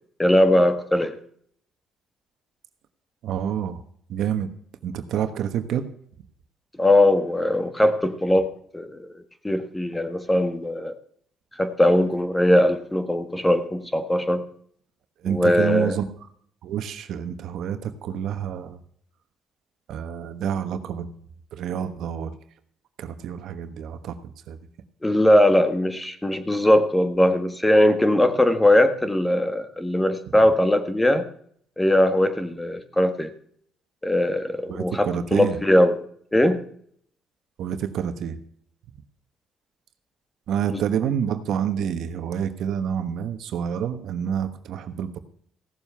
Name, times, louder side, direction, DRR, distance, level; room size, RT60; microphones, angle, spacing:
voice 1, 0.2-1.1 6.8-8.5 8.7-9.0 9.4-10.9 11.6-14.4 15.2-16.0 25.0-31.2 31.8-33.3 34.0-36.0 36.3-36.6 40.7-40.8, left 1 dB, 10° left, 9 dB, 1.5 m, -20 dB
voice 2, 3.2-3.8 4.1-4.5 4.8-5.9 15.2-16.1 16.6-18.8 19.9-21.1 21.5-22.3 23.0-24.6 34.7-35.6 37.6-38.4 40.5-45.2, right 8 dB, 70° right, 9 dB, 1.2 m, -28 dB
16.0 x 7.3 x 5.6 m, 0.62 s
cardioid pair, 90°, 0 cm